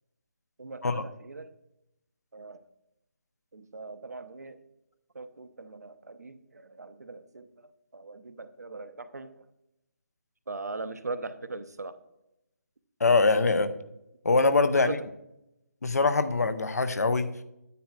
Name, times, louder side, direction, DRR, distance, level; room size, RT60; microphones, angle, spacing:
voice 1, 0.6-1.5 2.3-2.6 3.5-4.6 5.1-7.5 7.9-9.4 10.5-12.0 14.7-15.0, right 3 dB, 75° right, 10 dB, 0.7 m, -40 dB
voice 2, 13.0-13.7 14.2-15.0 15.8-17.3, left 3 dB, 70° left, 11 dB, 0.7 m, -23 dB
9.3 x 8.8 x 2.4 m, 0.86 s
figure-of-eight pair, 150°, 9 cm